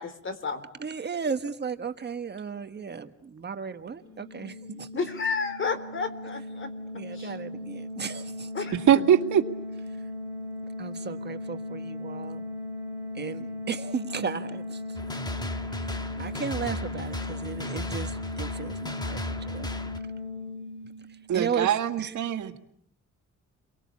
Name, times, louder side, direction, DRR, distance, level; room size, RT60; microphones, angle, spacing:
voice 1, 0.0-0.6 4.9-7.3 8.5-8.7, left 5 dB, 40° left, 11 dB, 3.6 m, -32 dB
voice 2, 0.8-4.9 6.9-8.6 10.8-12.4 13.1-15.0 15.7-19.7 21.3-21.7, right 6 dB, 35° right, 9 dB, 1.4 m, -35 dB
sound 1, 3.9-21.4, left 2 dB, 15° right, 4.1 m, -37 dB
voice 3, 8.7-9.5 21.3-22.5, right 9 dB, 80° right, 7 dB, 2.0 m, -22 dB
sound 2, 14.9-20.0, left 1 dB, 15° left, 1.5 m, -35 dB
30.0 x 23.5 x 8.5 m, 0.68 s
cardioid pair, 140°, 30 cm